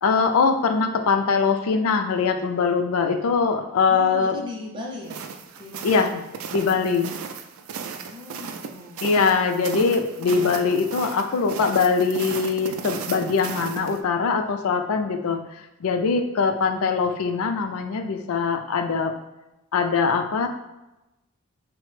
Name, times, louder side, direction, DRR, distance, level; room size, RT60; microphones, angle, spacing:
voice 1, 0.0-4.4 5.8-6.2 6.5-7.1 9.0-15.4 15.8-19.1 19.7-20.5, left 5 dB, 80° left, 5 dB, 0.4 m, -22 dB
voice 2, 3.9-5.2 5.6-6.2 8.0-9.4, left 1 dB, 20° right, -1 dB, 0.5 m, -38 dB
sound 1, 5.1-14.0, right 6 dB, 75° right, 0.3 m, -35 dB
3.2 x 2.1 x 3.1 m, 0.98 s
head